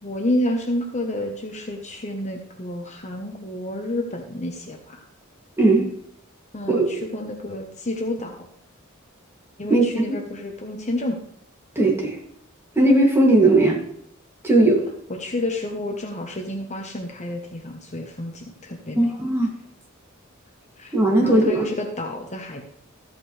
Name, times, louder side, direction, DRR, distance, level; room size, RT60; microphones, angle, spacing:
voice 1, 0.0-5.0 6.5-8.5 9.6-11.2 15.1-19.1 20.8-20.9 21.2-22.6, left 1 dB, 35° left, 3 dB, 1.1 m, -29 dB
voice 2, 5.6-5.9 6.7-7.0 9.7-9.8 11.8-12.1 12.8-13.8 14.4-14.8 19.0-19.5 20.9-21.6, right 2 dB, 10° right, -2 dB, 2.5 m, -17 dB
13.5 x 8.4 x 3.3 m, 0.70 s
head